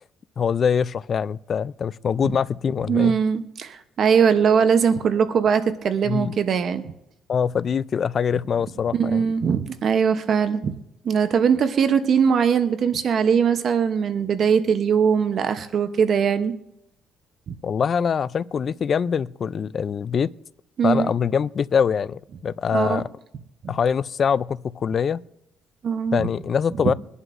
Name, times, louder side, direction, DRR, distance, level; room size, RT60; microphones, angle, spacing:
voice 1, 0.4-3.2 6.1-6.4 7.3-9.2 17.6-20.3 20.8-23.1 23.7-25.2 26.1-26.9, left 7 dB, 40° left, 0.4 m, -23 dB
voice 2, 2.9-6.8 8.9-10.8 11.0-16.5 17.5-17.6 20.8-21.1 22.7-23.0 23.6-23.7 25.8-26.3 26.8-26.9, right 7 dB, 50° right, 0.8 m, -21 dB
23.0 x 11.0 x 2.5 m
cardioid pair, 120°, 0 cm